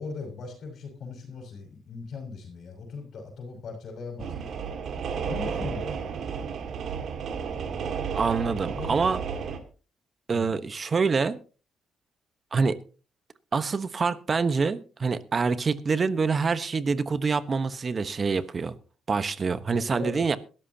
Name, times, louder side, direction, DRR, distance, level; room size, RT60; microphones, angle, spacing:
voice 1, 0.0-4.5 5.2-6.2 8.7-9.0 10.3-10.5 19.7-20.4, left 4 dB, 60° left, 5.3 m, -39 dB
sound 1, 4.2-9.6, right 6 dB, 65° right, 2.0 m, -32 dB
voice 2, 8.1-9.2 10.3-11.4 12.5-12.8 13.5-18.7 19.1-20.4, right 4 dB, 40° right, 1.1 m, -26 dB
22.0 x 13.5 x 2.8 m
cardioid pair, 90°, 0 cm